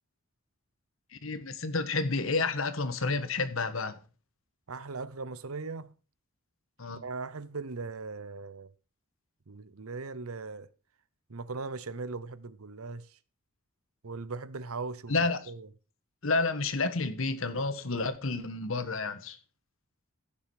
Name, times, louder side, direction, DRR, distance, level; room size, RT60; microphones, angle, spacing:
voice 1, 1.1-4.0 6.8-7.0 15.1-15.5 16.2-19.4, left 3 dB, 70° left, 1.4 m, -30 dB
voice 2, 4.7-5.9 7.0-8.7 9.5-10.7 11.3-13.2 14.0-15.7, right 4 dB, 80° right, 0.8 m, -39 dB
15.5 x 7.0 x 4.9 m
head